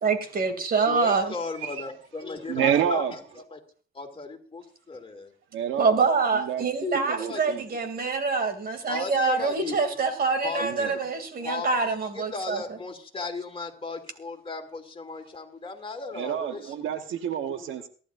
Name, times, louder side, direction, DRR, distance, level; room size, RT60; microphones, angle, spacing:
voice 1, 0.0-1.3 5.8-12.6, right 4 dB, 50° right, 8 dB, 2.9 m, -25 dB
voice 2, 0.6-3.6 3.9-5.3 7.3-7.4 8.9-9.8 10.4-11.0 11.4-16.9 17.6-17.7, left 3 dB, 25° left, 4 dB, 2.8 m, -36 dB
voice 3, 2.5-3.1 5.5-6.0 6.3-6.7 6.9-7.6 10.6-10.9 16.1-17.9, right 9 dB, 80° right, 8 dB, 1.3 m, -28 dB
23.0 x 11.5 x 2.6 m, 0.41 s
cardioid pair, 90°, 20 cm